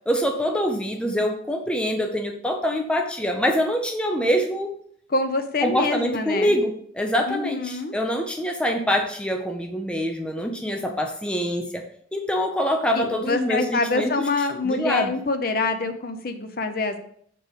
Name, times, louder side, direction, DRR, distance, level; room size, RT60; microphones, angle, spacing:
voice 1, 0.1-4.7 5.6-11.8 12.1-14.3 14.6-15.1, equal, 5° left, 3 dB, 0.5 m, -25 dB
voice 2, 5.1-6.6 7.3-7.9 12.9-17.0, left 3 dB, 50° left, 8 dB, 0.7 m, -25 dB
6.5 x 4.6 x 5.1 m, 0.64 s
head